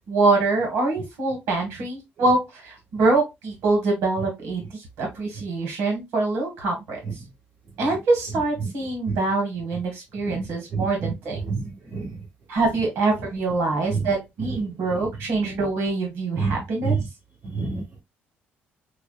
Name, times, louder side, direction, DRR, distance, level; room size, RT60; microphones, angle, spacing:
voice 1, 0.1-7.0 7.8-11.4 12.5-17.0, right 3 dB, 60° right, 1.6 m, -24 dB
voice 2, 10.7-11.1 11.4-12.2 13.9-14.1 16.4-17.0 17.5-18.0, right 5 dB, 30° right, 1.8 m, -28 dB
5.8 x 2.3 x 2.3 m
cardioid pair, 165°, 4 cm